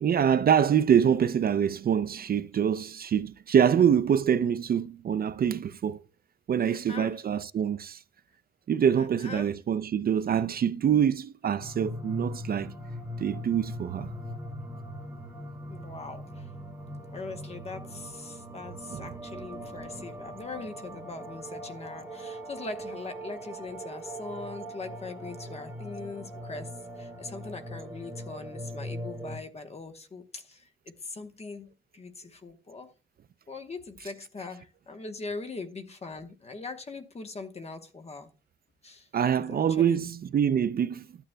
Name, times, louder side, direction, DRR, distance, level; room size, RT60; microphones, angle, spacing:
voice 1, 0.0-6.0 6.5-8.0 8.7-12.7 13.2-14.1 18.9-19.1 39.1-41.0, right 8 dB, 50° right, 0.4 m, -25 dB
voice 2, 6.6-7.2 9.0-9.5 15.7-16.5 17.1-26.7 27.0-30.7 31.0-31.7 31.9-32.9 33.5-38.3 38.8-39.1 39.4-40.1, left 3 dB, 30° left, 1.0 m, -41 dB
sound 1, 11.6-29.4, equal, 10° right, 1.9 m, -40 dB
13.0 x 8.9 x 2.2 m
wide cardioid pair, 165°, 20 cm